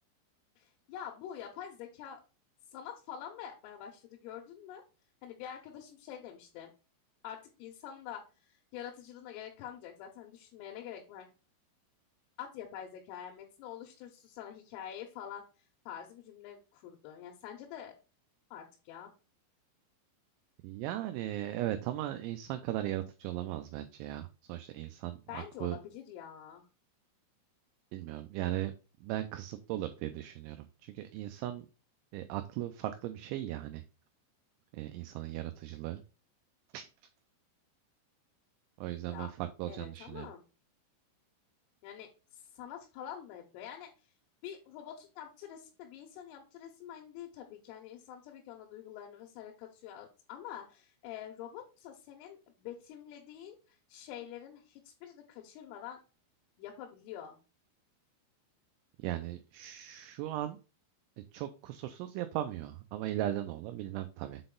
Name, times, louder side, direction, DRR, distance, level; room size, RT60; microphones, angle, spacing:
voice 1, 0.6-2.2 2.7-4.8 5.2-6.7 7.2-11.3 12.4-17.9 18.5-19.1 25.3-26.7 39.1-39.3 39.7-40.4 41.8-44.1 44.4-56.0 56.6-57.4, left 9 dB, 85° left, 1 dB, 3.6 m, -46 dB
voice 2, 20.6-25.8 27.9-28.7 29.0-31.7 32.1-33.8 34.7-36.0 36.7-36.9 38.8-40.3 59.0-60.6 61.3-64.4, right 13 dB, 85° right, 8 dB, 2.7 m, -37 dB
7.6 x 4.0 x 3.8 m, 0.32 s
omnidirectional pair, 5.8 m